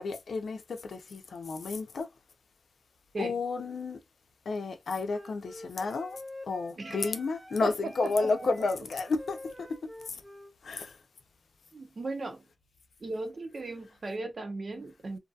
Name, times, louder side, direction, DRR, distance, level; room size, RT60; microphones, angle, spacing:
voice 1, 0.0-2.1 3.2-4.0 4.5-6.2 6.5-10.2 10.6-11.0, left 3 dB, 90° left, 0.5 m, -32 dB
Wind instrument woodwind instrument, 5.1-10.5, left 1 dB, ahead, 0.7 m, -47 dB
voice 2, 7.6-8.3 11.7-12.4 13.0-15.2, right 2 dB, 55° right, 0.6 m, -37 dB
2.6 x 2.3 x 2.6 m
wide cardioid pair, 105°, 0 cm